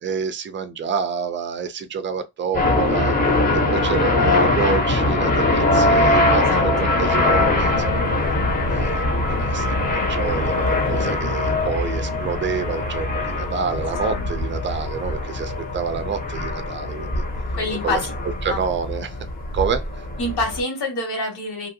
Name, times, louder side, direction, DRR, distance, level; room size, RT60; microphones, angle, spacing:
voice 1, 0.0-3.1 3.5-8.0 8.7-17.2 17.8-18.0 18.4-19.1 19.5-20.1, right 6 dB, 30° right, 0.4 m, -28 dB
sound 1, 2.5-20.6, left 2 dB, 25° left, 0.8 m, -22 dB
voice 2, 6.3-6.9 17.5-18.1 18.5-18.6 20.2-21.7, left 2 dB, 75° left, 1.8 m, -26 dB
2.9 x 2.5 x 2.6 m
wide cardioid pair, 165°, 38 cm